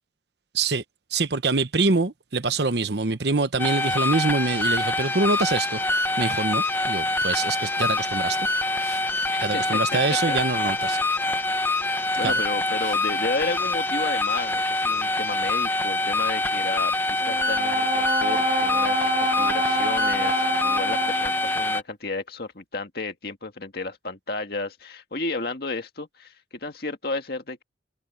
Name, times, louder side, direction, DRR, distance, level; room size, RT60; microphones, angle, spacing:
voice 1, 1.1-5.8 6.2-8.4 8.8-9.0 9.4-11.0 12.2-12.3, right 3 dB, 60° right, 1.0 m, -25 dB
sound 1, 3.6-21.8, left 2 dB, 10° left, 0.9 m, -25 dB
voice 2, 9.3-10.0 10.3-10.4 12.2-26.4 26.6-27.6, left 3 dB, 55° left, 2.0 m, -32 dB
Brass instrument, 17.2-21.6, right 1 dB, 25° right, 1.0 m, -27 dB
head